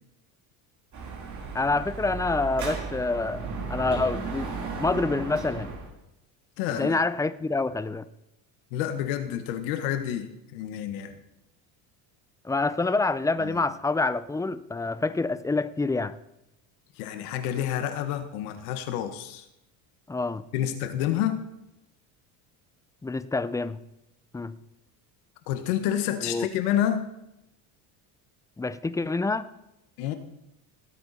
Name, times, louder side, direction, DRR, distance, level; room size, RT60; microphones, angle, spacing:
Dog / Motorcycle, 0.9-5.9, right 4 dB, 40° right, 3.7 m, -35 dB
voice 1, 1.5-5.7 6.8-8.0 12.4-16.2 20.1-20.4 23.0-23.8 24.3-24.6 26.2-26.5 28.6-29.5, left 3 dB, 10° left, 15 dB, 0.5 m, -27 dB
voice 2, 6.6-7.0 8.7-11.2 13.4-13.5 17.0-19.4 20.5-21.4 25.5-27.1 30.0-30.1, left 10 dB, 90° left, 9 dB, 1.6 m, -29 dB
17.5 x 8.9 x 4.3 m, 0.86 s
supercardioid pair, 105°, 43 cm